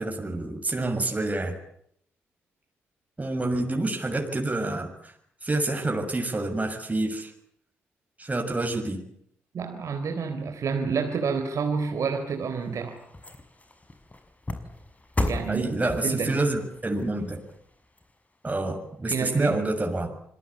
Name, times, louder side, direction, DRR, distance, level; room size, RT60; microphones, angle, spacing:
voice 1, 0.0-1.6 3.2-5.1 5.4-7.3 8.2-9.0 15.5-17.4 18.4-20.1, right 2 dB, 25° right, 3 dB, 6.7 m, -28 dB
voice 2, 9.5-13.0 15.2-15.7 16.0-16.4 19.1-19.6, right 5 dB, 60° right, 4 dB, 3.8 m, -29 dB
sound 1, 12.2-18.7 19.1-19.2, left 2 dB, 25° left, 6.3 m, -36 dB
27.0 x 21.0 x 8.5 m, 0.70 s
hypercardioid pair, 40°, 6 cm